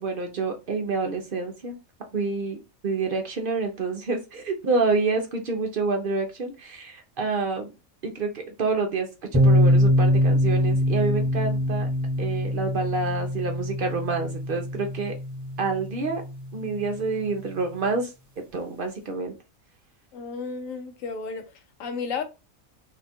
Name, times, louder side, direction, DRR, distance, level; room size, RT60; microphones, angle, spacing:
voice 1, 0.0-1.7 2.1-2.6 2.8-7.7 8.0-11.9 12.2-15.2 15.6-16.2 16.5-18.1 18.5-19.3, right 4 dB, 60° right, 0.6 m, -28 dB
sound 1, 9.3-17.0, equal, 20° right, 0.6 m, -23 dB
voice 2, 20.1-21.4 21.8-22.2, left 5 dB, 70° left, 1.0 m, -32 dB
2.9 x 2.3 x 4.1 m
omnidirectional pair, 1.5 m